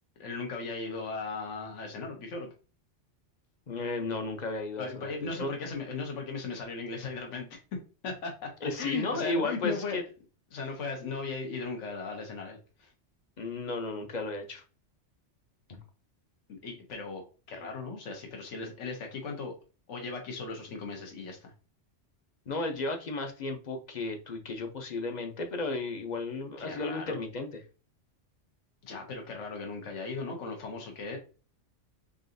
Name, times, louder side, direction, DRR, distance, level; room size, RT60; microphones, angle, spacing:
voice 1, 0.2-2.5 4.8-7.6 8.0-8.5 8.8-10.0 10.5-12.9 16.6-17.2 17.5-19.5 19.9-21.5 26.6-27.2 28.8-31.2, left 4 dB, 75° left, 2 dB, 1.3 m, -37 dB
voice 2, 3.7-5.5 8.6-10.0 13.4-14.6 15.7-15.8 22.5-27.5, left 3 dB, 45° left, 5 dB, 0.7 m, -34 dB
3.9 x 3.7 x 2.6 m, 0.34 s
omnidirectional pair, 1.2 m